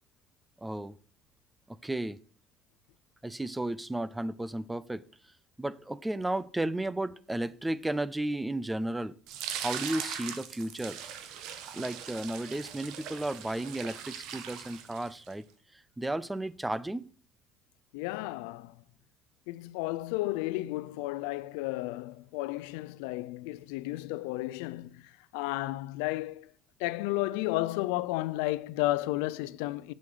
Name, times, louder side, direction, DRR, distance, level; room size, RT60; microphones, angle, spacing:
voice 1, 0.6-1.0 1.7-2.2 3.2-5.0 5.6-9.2 9.6-11.0 11.7-15.4 15.7-17.1, right 1 dB, 10° right, 0.5 m, -33 dB
sound 1, 9.3-15.3, right 8 dB, 70° right, 1.3 m, -40 dB
voice 2, 17.9-18.7 19.5-26.5 26.8-29.9, left 18 dB, 85° left, 0.5 m, -33 dB
7.8 x 7.7 x 4.9 m
supercardioid pair, 105°, 0 cm